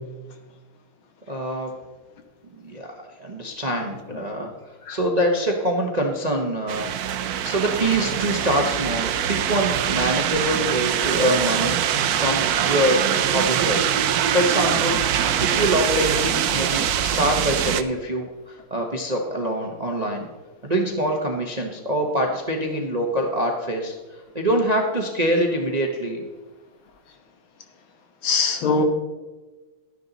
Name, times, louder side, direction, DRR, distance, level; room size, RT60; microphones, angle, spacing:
voice 1, 1.3-1.7 2.6-4.5 4.9-6.9 7.2-13.9 14.3-15.0 15.4-20.3 20.6-23.9 24.3-26.2, right 1 dB, 30° right, 1 dB, 0.7 m, -24 dB
sound 1, 6.7-17.8, right 9 dB, 75° right, 0.8 m, -23 dB
voice 2, 28.2-28.8, left 4 dB, 75° left, 5 dB, 2.0 m, -22 dB
12.0 x 10.0 x 4.0 m, 1.2 s
omnidirectional pair, 2.3 m